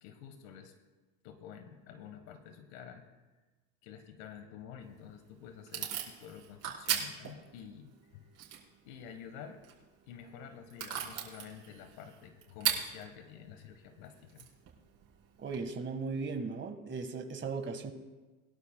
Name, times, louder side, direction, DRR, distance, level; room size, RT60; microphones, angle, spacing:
voice 1, 0.0-0.7 1.2-3.1 3.8-8.3 8.8-9.6 10.1-14.5, left 8 dB, 75° left, 7 dB, 1.5 m, -49 dB
Packing tape duct tape / Tearing, 4.8-15.6, right 10 dB, 45° right, 4.6 m, -41 dB
voice 2, 15.4-17.9, right 4 dB, 25° right, 6 dB, 1.6 m, -37 dB
22.5 x 12.0 x 2.3 m, 1.2 s
supercardioid pair, 110°, 42 cm